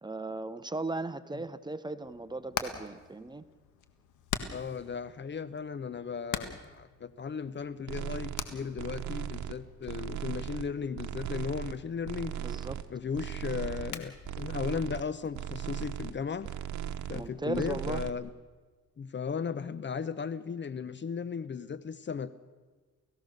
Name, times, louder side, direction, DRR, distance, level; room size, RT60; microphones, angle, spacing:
voice 1, 0.0-3.4 12.4-12.8 17.1-18.0, right 2 dB, 15° right, 12 dB, 1.0 m, -37 dB
Hammer, 2.0-17.3, left 8 dB, 80° left, 1.8 m, -45 dB
voice 2, 4.5-12.4 12.9-16.5 17.1-18.3 19.0-22.4, left 6 dB, 40° left, 16 dB, 0.9 m, -36 dB
sound 1, 7.9-8.5 8.8-9.6 9.9-10.7 11.0-11.8 12.0-12.8 13.1-14.0 14.2-15.0 15.3-16.2 16.4-17.3 17.5-18.1, right 10 dB, 70° right, 1.2 m, -37 dB
30.0 x 16.0 x 6.6 m, 1.4 s
cardioid pair, 90°, 30 cm